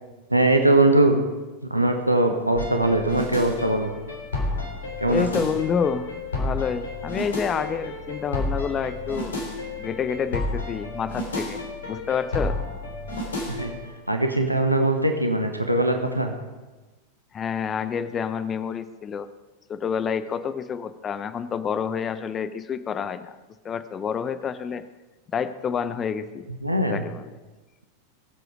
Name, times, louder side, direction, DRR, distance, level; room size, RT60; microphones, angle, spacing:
voice 1, 0.3-1.2 1.7-3.9 5.0-5.4 13.5-13.7 14.1-16.3 26.6-27.0, right 2 dB, 85° right, 5 dB, 1.2 m, -21 dB
sound 1, 2.5-13.9, left 2 dB, 65° left, 2.9 m, -31 dB
voice 2, 5.1-9.3 9.8-11.6 11.9-12.6 17.3-19.3 19.7-23.4 23.6-24.8 25.3-26.4 26.8-27.3, left 7 dB, 25° left, 13 dB, 0.7 m, -28 dB
21.0 x 8.0 x 4.9 m, 1.2 s
figure-of-eight pair, 90°, 0 cm